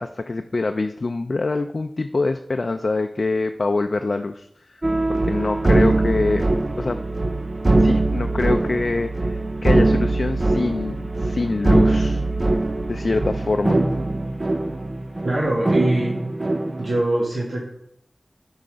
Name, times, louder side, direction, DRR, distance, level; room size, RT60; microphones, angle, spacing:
voice 1, 0.0-4.8 5.1-6.5 6.8-7.0 7.8-12.2 12.9-13.8, left 3 dB, 60° left, 6 dB, 0.4 m, -25 dB
sound 1, 4.8-17.0, right 2 dB, 45° right, 0.5 m, -21 dB
voice 2, 15.2-16.1 16.8-17.6, right 1 dB, 80° right, -4 dB, 1.9 m, -23 dB
9.2 x 5.6 x 5.0 m, 0.76 s
wide cardioid pair, 65°, 0 cm